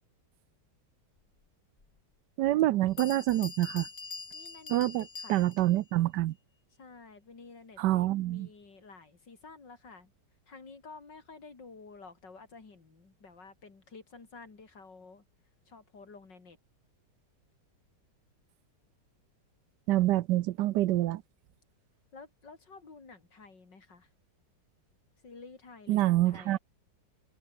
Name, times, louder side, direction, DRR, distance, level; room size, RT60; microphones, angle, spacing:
Bell, 1.8-1.9 2.6-2.7 3.0-5.8, left 4 dB, 45° left, 2.9 m, -43 dB
voice 1, 2.4-3.9 4.7-6.3 7.8-8.5 19.9-21.2 25.9-26.6, right 15 dB, 75° right, 1.2 m, -26 dB
voice 2, 4.3-5.4 6.8-10.1 10.5-15.2 15.7-16.6 22.1-24.1 25.2-26.6, left 4 dB, 75° left, 4.2 m, -51 dB
omnidirectional pair, 1.9 m